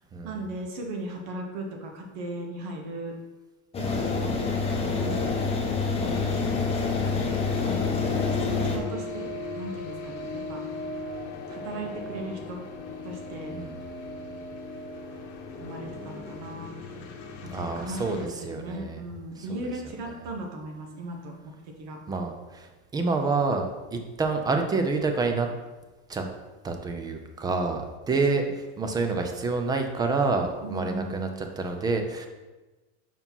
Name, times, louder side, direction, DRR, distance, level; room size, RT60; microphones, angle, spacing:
voice 1, 0.2-3.1 3.8-5.3 7.6-8.0 8.4-9.3 9.5-10.7 11.5-12.6 13.0-13.6 15.6-17.1 17.4-21.3 21.8-22.0 30.6-31.3, right 1 dB, 65° right, 2 dB, 1.5 m, -37 dB
sound 1, 3.7-8.8, left 4 dB, 15° left, 1.0 m, -27 dB
sound 2, 6.0-18.3, left 3 dB, 55° left, 1.2 m, -37 dB
voice 2, 6.0-6.4 13.5-13.8 17.5-19.0 19.5-19.6 22.1-23.7 23.9-25.5 26.1-26.2 26.6-32.3, right 3 dB, 10° right, 5 dB, 0.4 m, -28 dB
5.4 x 4.9 x 5.4 m, 1.2 s
cardioid pair, 165°, 35 cm